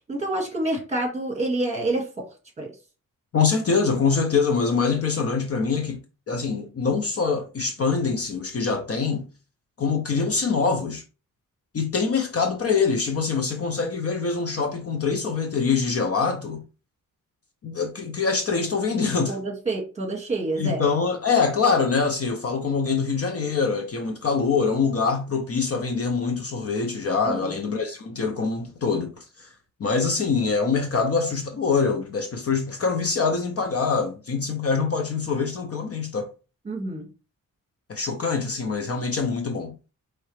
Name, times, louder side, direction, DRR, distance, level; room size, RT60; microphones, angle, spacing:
voice 1, 0.1-2.3 2.6-2.7 19.3-20.8 27.2-27.5 36.6-37.1, right 2 dB, 20° right, 1.7 m, -27 dB
voice 2, 3.3-9.3 9.8-11.0 11.7-16.6 17.6-19.4 20.6-29.5 29.8-36.3 37.9-39.8, left 5 dB, 45° left, 0.6 m, -24 dB
4.7 x 3.2 x 3.1 m
wide cardioid pair, 170°, 33 cm